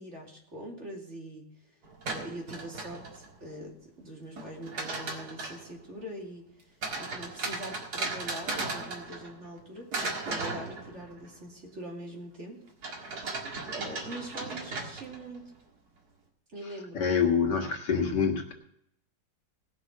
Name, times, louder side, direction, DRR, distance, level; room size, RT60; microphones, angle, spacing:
voice 1, 0.0-1.5 2.0-6.5 7.0-12.6 12.9-13.2 13.7-15.5 16.5-17.2, right 1 dB, 40° right, -1 dB, 2.8 m, -43 dB
sound 1, 1.8-3.4 4.4-5.7 6.8-9.6 9.9-11.3 12.8-15.4, right 3 dB, 60° right, 2.3 m, -36 dB
voice 2, 16.9-18.5, left 6 dB, 70° left, 2 dB, 2.3 m, -26 dB
19.0 x 6.3 x 5.9 m, 0.72 s
omnidirectional pair, 2.0 m